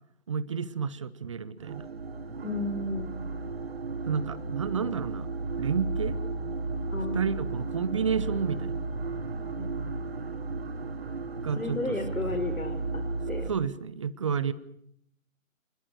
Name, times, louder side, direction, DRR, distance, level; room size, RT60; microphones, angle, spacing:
voice 1, 0.3-1.9 4.1-5.3 5.6-6.2 7.1-8.8 11.4-12.0 12.3-12.4 13.5-14.5, right 6 dB, 25° right, 15 dB, 1.0 m, -30 dB
sound 1, 1.6-13.5, right 3 dB, 45° right, 4.4 m, -34 dB
voice 2, 2.4-3.1 6.9-7.5 9.6-9.9 11.5-13.5, left 2 dB, 85° left, 7 dB, 4.7 m, -34 dB
29.5 x 21.0 x 6.7 m, 0.71 s
figure-of-eight pair, 155°, 41 cm